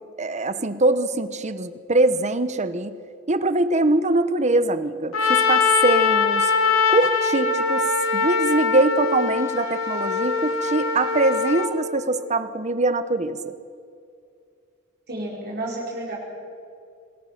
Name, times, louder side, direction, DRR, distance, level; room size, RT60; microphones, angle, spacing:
voice 1, 0.2-2.9 3.3-6.5 6.9-7.8 8.1-13.6, right 2 dB, 35° right, 12 dB, 1.0 m, -23 dB
Trumpet, 5.1-11.7, left 5 dB, 85° left, 2.4 m, -22 dB
voice 2, 15.1-16.1, right 1 dB, 50° right, -4 dB, 5.2 m, -31 dB
26.5 x 20.5 x 5.9 m, 2.5 s
head